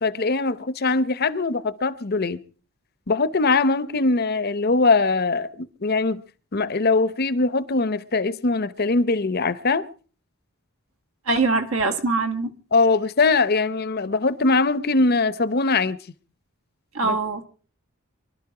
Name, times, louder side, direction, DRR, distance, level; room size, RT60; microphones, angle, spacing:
voice 1, 0.0-2.4 3.1-6.2 6.5-9.8 12.7-16.0 17.0-17.2, left 3 dB, 45° left, 0.7 m, -21 dB
voice 2, 11.3-12.5 16.9-17.4, right 3 dB, 70° right, 1.7 m, -23 dB
24.0 x 12.0 x 4.9 m
head